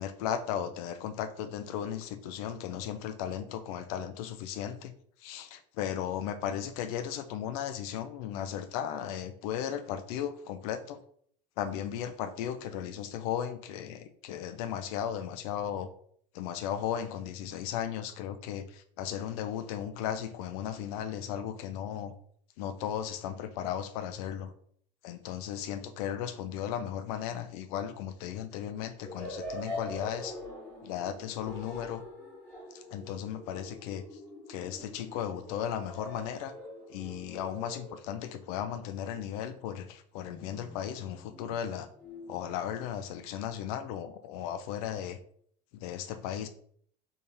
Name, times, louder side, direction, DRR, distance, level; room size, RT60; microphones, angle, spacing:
voice 1, 0.0-4.9 5.2-11.0 11.6-15.9 16.3-22.1 22.6-24.5 25.0-30.4 30.8-32.0 32.7-34.2 34.5-36.5 36.9-41.9 42.3-45.2 45.7-46.5, left 9 dB, 70° left, 11 dB, 0.6 m, -36 dB
sound 1, 29.0-38.5 40.2-42.6, left 1 dB, 10° left, 1.5 m, -44 dB
4.3 x 3.5 x 3.4 m, 0.63 s
cardioid pair, 180°, 19 cm